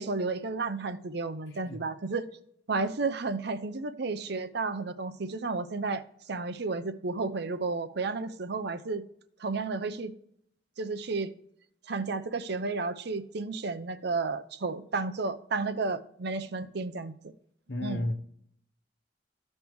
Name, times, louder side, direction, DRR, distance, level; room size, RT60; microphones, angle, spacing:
voice 1, 0.0-2.3 2.7-9.0 9.4-10.1 10.8-11.3 11.9-17.1 17.8-18.0, right 3 dB, 60° right, 11 dB, 0.6 m, -32 dB
voice 2, 17.7-18.1, left 1 dB, 70° left, 7 dB, 1.0 m, -32 dB
14.5 x 5.3 x 3.1 m, 0.71 s
head